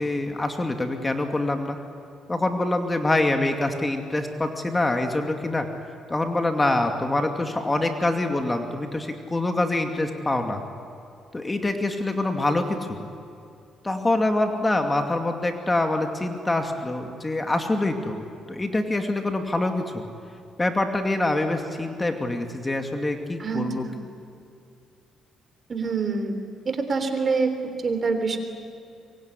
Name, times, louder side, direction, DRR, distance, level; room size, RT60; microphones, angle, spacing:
voice 1, 0.0-1.8 2.3-5.7 6.1-10.6 11.3-13.1 13.8-18.2 18.5-20.0 20.6-23.9, left 2 dB, 20° left, 5 dB, 2.5 m, -25 dB
voice 2, 25.7-26.3 26.7-27.5 27.8-28.4, right 4 dB, 40° right, 8 dB, 3.5 m, -25 dB
24.0 x 23.5 x 9.8 m, 2.6 s
cardioid pair, 90°, 0 cm